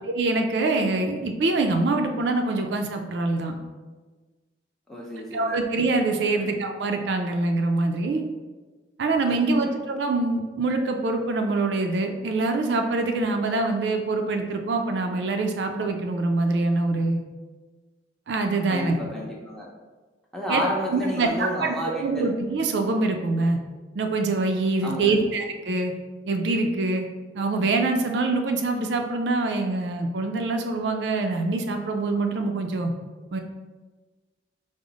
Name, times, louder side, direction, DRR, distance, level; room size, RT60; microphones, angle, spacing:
voice 1, 0.0-3.6 5.3-8.3 9.0-17.2 18.3-19.0 20.5-20.6 20.9-21.7 22.0-23.6 24.0-25.9 26.3-27.1 27.3-32.9 33.3-33.4, right 3 dB, 70° right, 4 dB, 0.4 m, -24 dB
voice 2, 4.9-5.6 6.3-6.5 9.3-9.8 18.7-19.7 20.3-22.3 24.8-25.2, equal, 5° left, -3 dB, 0.6 m, -31 dB
4.9 x 2.0 x 3.9 m, 1.3 s
head